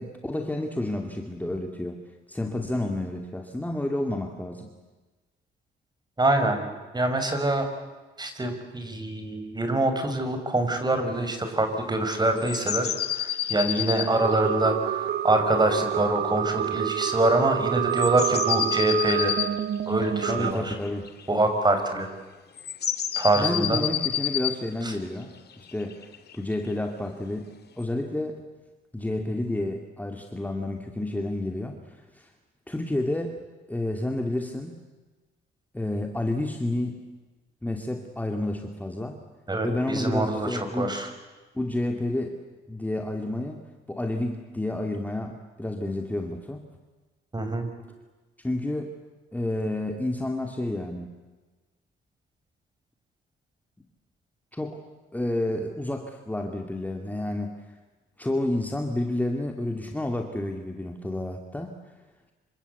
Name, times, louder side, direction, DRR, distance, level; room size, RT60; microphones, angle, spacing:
voice 1, 0.0-2.0 2.3-4.7 20.3-21.1 23.3-26.0 26.3-27.5 27.8-28.4 28.9-32.3 32.7-33.4 33.7-34.8 35.7-37.0 37.6-39.2 39.6-41.0 41.5-42.4 42.7-43.6 43.9-46.6 48.4-48.9 49.3-51.1 54.5-54.8 55.1-57.5 58.2-61.8, left 1 dB, 10° left, 4 dB, 2.6 m, -30 dB
voice 2, 6.2-6.6 6.9-7.7 8.2-19.4 19.9-20.8 21.3-22.1 23.2-23.8 24.8-24.9 39.5-41.1 47.3-47.7, right 2 dB, 20° right, 7 dB, 5.7 m, -25 dB
sound 1, 12.4-14.5 17.9-21.2 22.6-24.6 25.5-26.7 27.8-27.9, left 11 dB, 55° left, 2.3 m, -29 dB
sound 2, 14.1-20.5, right 11 dB, 55° right, 1.0 m, -28 dB
27.5 x 25.0 x 8.3 m, 1.2 s
cardioid pair, 90°, 20 cm